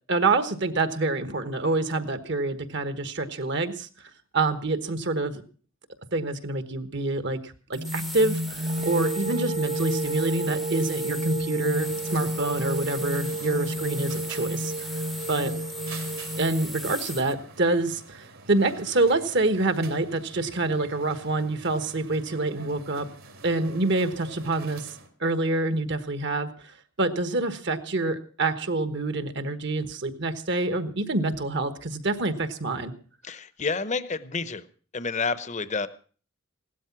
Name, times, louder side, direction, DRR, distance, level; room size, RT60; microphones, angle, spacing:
voice 1, 0.1-3.9 4.3-5.4 6.1-14.9 15.3-15.5 16.4-23.1 23.4-32.9, right 2 dB, 55° right, 11 dB, 1.3 m, -27 dB
sound 1, 7.7-17.3, equal, ahead, 0.7 m, -38 dB
sound 2, 7.7-16.6, right 1 dB, 35° right, 0.7 m, -30 dB
sound 3, 11.8-25.1, right 4 dB, 75° right, 3.0 m, -47 dB
voice 2, 33.2-34.6 34.9-35.9, left 4 dB, 35° left, 15 dB, 0.8 m, -29 dB
16.5 x 12.5 x 5.8 m, 0.41 s
head